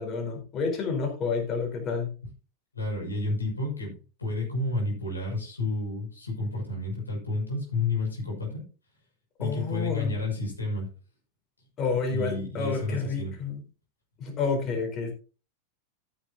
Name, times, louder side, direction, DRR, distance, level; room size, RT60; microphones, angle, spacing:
voice 1, 0.0-2.1 9.4-10.1 11.8-13.6 14.2-15.1, left 4 dB, 30° left, 3 dB, 4.3 m, -29 dB
voice 2, 2.7-8.6 9.4-10.9 12.1-13.3, left 2 dB, 80° left, -1 dB, 6.3 m, -31 dB
14.5 x 9.5 x 2.9 m, 0.35 s
figure-of-eight pair, 90°, 0 cm